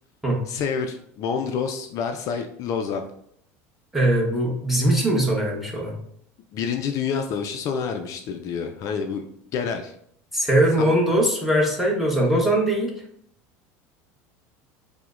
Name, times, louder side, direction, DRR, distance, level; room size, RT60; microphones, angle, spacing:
voice 1, 0.5-3.0 6.5-9.2 9.5-9.9 10.8-10.9, left 6 dB, 50° left, 5 dB, 0.3 m, -28 dB
voice 2, 3.9-5.9 10.3-12.9, right 1 dB, ahead, -2 dB, 1.1 m, -21 dB
5.7 x 2.1 x 2.4 m, 0.69 s
supercardioid pair, 95°, 7 cm